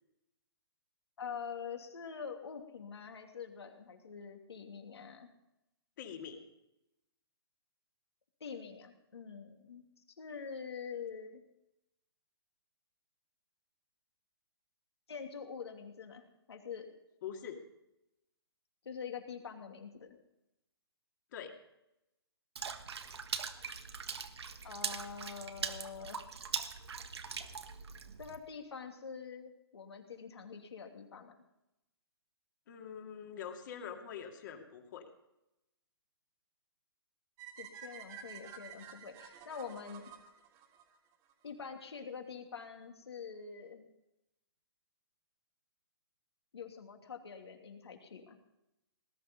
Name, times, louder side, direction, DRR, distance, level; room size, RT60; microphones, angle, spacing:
voice 1, 1.2-5.3 8.4-9.8 10.2-11.4 15.1-16.9 18.8-20.2 24.6-26.2 28.2-31.3 37.6-40.1 41.4-43.9 46.5-48.4, left 6 dB, 80° left, 4 dB, 2.8 m, -45 dB
voice 2, 6.0-6.5 17.2-17.7 21.3-21.5 32.7-35.1, left 8 dB, 50° left, 3 dB, 2.4 m, -44 dB
Water / Splash splatter, 22.6-28.4, right 6 dB, 80° right, 1.5 m, -41 dB
sound 1, 37.4-41.5, right 8 dB, 25° right, 2.0 m, -51 dB
19.5 x 11.5 x 5.4 m, 0.88 s
hypercardioid pair, 145°, 14 cm